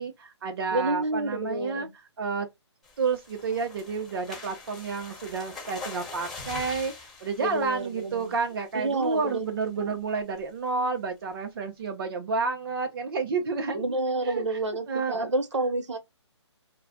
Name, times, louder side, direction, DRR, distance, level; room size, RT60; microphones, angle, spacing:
voice 1, 0.0-1.9 2.2-2.5 3.0-13.9 14.2-15.3, right 4 dB, 50° right, 0.7 m, -30 dB
voice 2, 0.7-1.9 7.4-8.3 8.7-9.5 9.8-10.0 13.7-16.0, right 2 dB, 80° right, 0.9 m, -29 dB
sound 1, 2.8-8.6 9.0-9.3 9.6-9.7 10.1-10.4, left 3 dB, ahead, 1.1 m, -43 dB
2.3 x 2.1 x 3.6 m
hypercardioid pair, 145°, 15 cm